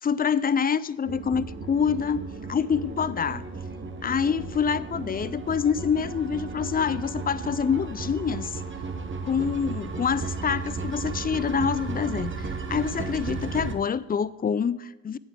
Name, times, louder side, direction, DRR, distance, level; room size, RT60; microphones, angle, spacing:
voice 1, 0.0-2.2 2.5-3.5 4.0-8.6 9.2-15.2, left 7 dB, 25° left, 18 dB, 0.4 m, -26 dB
sound 1, 1.1-13.7, right 4 dB, 35° right, 1.1 m, -34 dB
8.8 x 7.1 x 6.0 m, 1.0 s
cardioid pair, 65°, 34 cm